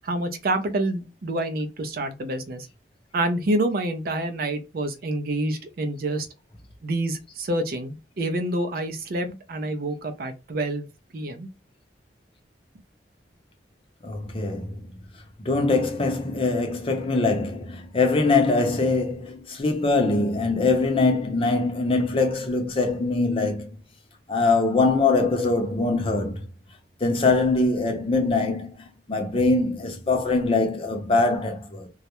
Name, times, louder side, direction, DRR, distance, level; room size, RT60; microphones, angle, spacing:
voice 1, 0.0-2.7 3.1-6.3 6.8-10.9 11.1-11.5, right 1 dB, 55° right, 0.4 m, -27 dB
voice 2, 14.0-14.9 15.4-23.8 24.3-26.5 27.0-31.9, left 3 dB, 30° left, 0.5 m, -23 dB
2.3 x 2.0 x 2.8 m
head